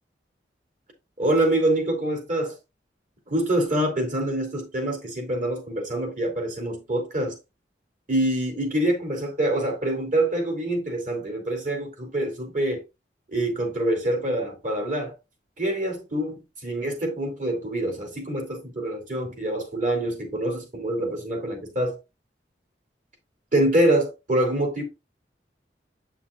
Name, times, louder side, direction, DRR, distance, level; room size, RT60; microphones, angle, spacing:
voice 1, 1.2-2.5 3.3-7.4 8.1-12.8 13.3-15.1 15.6-22.0 23.5-24.8, right 1 dB, 50° right, 3.0 m, -25 dB
8.2 x 7.1 x 2.4 m
head